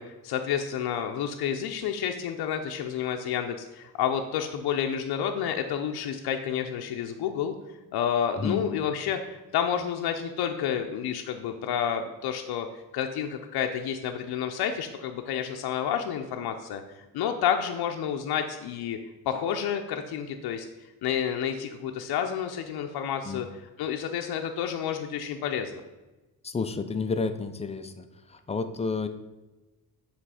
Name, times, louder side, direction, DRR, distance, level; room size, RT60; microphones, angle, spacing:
voice 1, 0.0-7.5 7.9-12.7 12.9-19.0 19.3-23.5 23.8-25.7, left 8 dB, 80° left, 4 dB, 0.6 m, -30 dB
voice 2, 26.4-28.0 28.3-29.1, left 4 dB, 20° left, 9 dB, 0.3 m, -30 dB
7.5 x 3.2 x 4.8 m, 1.1 s
cardioid pair, 115°, 38 cm